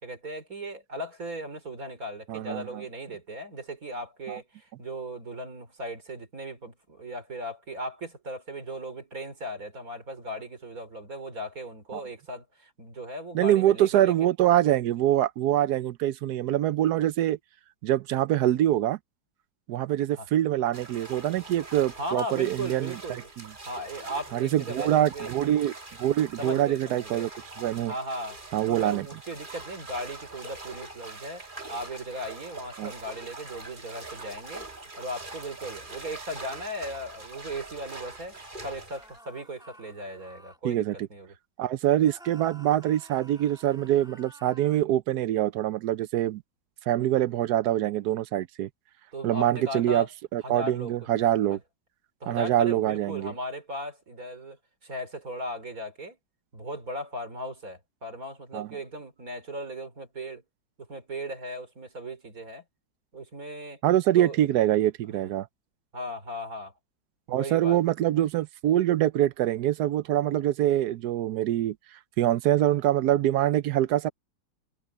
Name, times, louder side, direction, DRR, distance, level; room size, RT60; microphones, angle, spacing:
voice 1, 0.0-14.1 20.1-20.3 22.0-23.3 23.6-25.3 26.4-27.3 27.9-28.4 28.7-31.4 31.7-34.7 35.0-40.8 41.1-41.3 49.1-50.1 50.4-50.9 52.2-56.2 56.5-60.4 60.8-62.6 63.1-63.8 64.2-64.4 65.9-66.7 67.3-67.8, equal, 50° right, 4.4 m, -37 dB
voice 2, 2.3-2.7 4.3-4.4 11.9-12.0 13.3-17.4 17.8-19.0 19.7-22.9 23.4-23.5 24.3-25.7 26.0-27.3 27.6-27.9 28.5-29.1 32.8-32.9 40.6-40.9 41.6-46.4 46.9-48.7 49.2-50.1 50.3-51.6 52.3-53.3 58.5-58.7 63.8-65.5 67.3-71.7 72.2-74.1, right 12 dB, 70° right, 1.0 m, -24 dB
sound 1, 20.7-39.2, right 2 dB, 25° right, 2.2 m, -43 dB
sound 2, 38.8-40.6 42.0-44.8, right 1 dB, ahead, 2.2 m, -52 dB
omnidirectional pair, 2.0 m